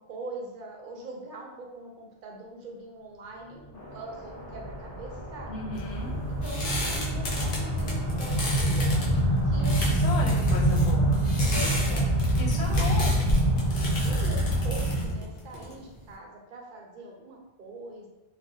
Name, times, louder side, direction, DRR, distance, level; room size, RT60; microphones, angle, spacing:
voice 1, 0.0-5.6 6.3-10.0 11.5-12.1 12.5-13.0 14.0-18.1, right 2 dB, 60° right, -1 dB, 0.6 m, -42 dB
sound 1, 3.7-14.9, left 1 dB, 25° left, 0.4 m, -45 dB
sound 2, 4.3-15.1, right 1 dB, 5° left, 0.8 m, -26 dB
voice 2, 5.5-6.1 9.9-11.2 12.3-13.2, left 4 dB, 90° left, -2 dB, 0.9 m, -35 dB
sound 3, 5.7-16.1, left 1 dB, 60° left, 0.8 m, -34 dB
2.5 x 2.0 x 2.6 m, 1.0 s
omnidirectional pair, 1.1 m